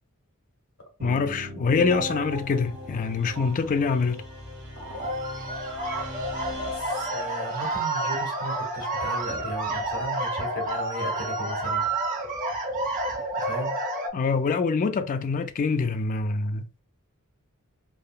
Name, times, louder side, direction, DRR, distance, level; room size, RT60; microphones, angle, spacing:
voice 1, 1.0-4.2 14.1-16.8, left 4 dB, 35° left, 0.3 m, -25 dB
sound 1, 1.0-7.8, left 1 dB, 55° right, 1.1 m, -37 dB
sound 2, 4.9-14.1, right 2 dB, 40° right, 0.7 m, -29 dB
voice 2, 6.7-11.9 13.4-13.7, equal, 75° left, 1.3 m, -36 dB
3.3 x 2.2 x 2.3 m
head